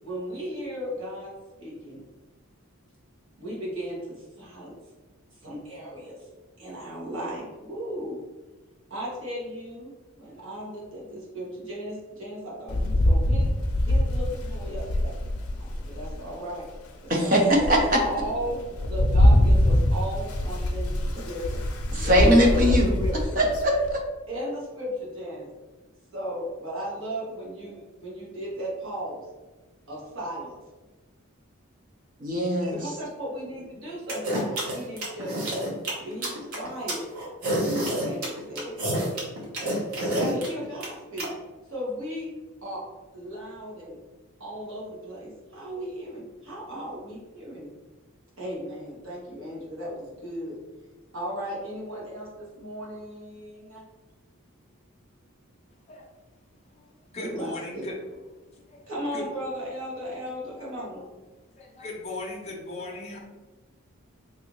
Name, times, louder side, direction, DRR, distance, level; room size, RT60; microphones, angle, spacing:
voice 1, 0.0-1.3 1.6-2.0 3.4-4.7 5.3-6.3 6.6-8.2 8.9-13.5 13.8-15.2 15.6-16.7 17.0-21.6 22.0-22.3 22.6-23.4 24.3-25.5 26.1-29.3 29.9-30.5 32.7-35.3 35.9-37.0 38.0-38.8 40.0-41.3 41.7-42.3 42.6-42.8 43.1-44.0 44.4-47.7 48.4-50.5 51.1-53.9 57.1-57.9 58.9-61.0, equal, 65° right, -5 dB, 1.3 m, -36 dB
Rain, 12.7-16.2 16.7-16.8 17.3-23.9, left 1 dB, 85° left, 0.5 m, -24 dB
voice 2, 17.1-18.0 21.9-22.9 23.4-24.0 32.2-32.8, equal, 40° right, 0 dB, 0.6 m, -21 dB
sound 1, 34.1-41.3, right 1 dB, 90° right, 0.9 m, -28 dB
voice 3, 57.1-58.2 58.7-58.8 59.1-59.2 60.5-60.7 60.9-61.0 61.6-63.2, left 2 dB, 30° left, -1 dB, 0.6 m, -38 dB
3.3 x 2.6 x 3.0 m, 1.2 s
head